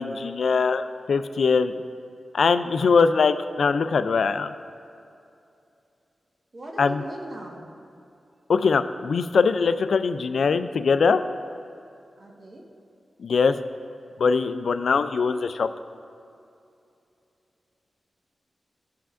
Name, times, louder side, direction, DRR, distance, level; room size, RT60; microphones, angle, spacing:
voice 1, 0.0-1.7 2.3-4.5 6.8-7.0 8.5-11.2 13.2-13.6 14.2-15.7, left 5 dB, 75° left, 10 dB, 0.3 m, -22 dB
voice 2, 6.5-7.8 12.2-12.7, right 1 dB, 45° right, -1 dB, 1.3 m, -39 dB
15.5 x 5.7 x 2.5 m, 2.6 s
wide cardioid pair, 80°, 0 cm